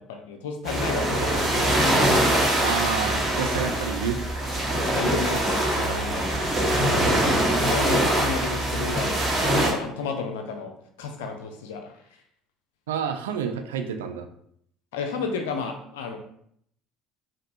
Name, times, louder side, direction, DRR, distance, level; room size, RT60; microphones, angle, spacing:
voice 1, 0.2-1.9 4.8-10.7 11.0-12.0 14.9-16.2, left 5 dB, 70° left, 4 dB, 0.4 m, -33 dB
sound 1, 0.7-9.7, right 1 dB, 25° right, 1.5 m, -23 dB
voice 2, 2.6-4.2 5.8-6.1 12.9-14.3, right 7 dB, 75° right, 7 dB, 0.3 m, -29 dB
5.1 x 2.5 x 2.7 m, 0.67 s
figure-of-eight pair, 60°, 0 cm